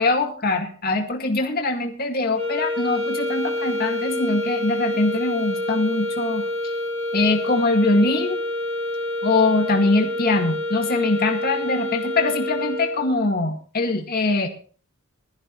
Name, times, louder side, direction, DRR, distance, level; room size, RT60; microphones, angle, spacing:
voice 1, 0.0-6.7 7.1-8.4 9.2-14.5, left 2 dB, 50° left, 3 dB, 2.2 m, -22 dB
sound 1, 2.3-13.2, left 1 dB, 35° right, 3.0 m, -27 dB
20.0 x 14.0 x 3.2 m, 0.42 s
head